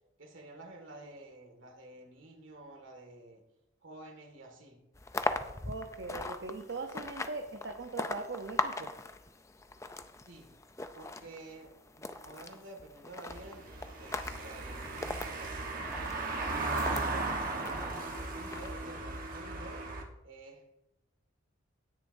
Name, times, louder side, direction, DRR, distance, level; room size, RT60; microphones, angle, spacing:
voice 1, 0.2-3.4 3.8-4.8 10.3-10.6 11.0-16.3 16.8-19.9 20.2-20.6, right 2 dB, 80° right, 3 dB, 2.0 m, -50 dB
sound 1, 4.9-17.1 17.6-18.7, left 2 dB, 15° left, 0.4 m, -40 dB
voice 2, 5.7-8.9, right 3 dB, 65° right, 4 dB, 0.7 m, -40 dB
Car passing by / Engine, 13.3-20.0, right 2 dB, 45° right, 1.3 m, -36 dB
17.5 x 6.8 x 2.7 m, 0.88 s
head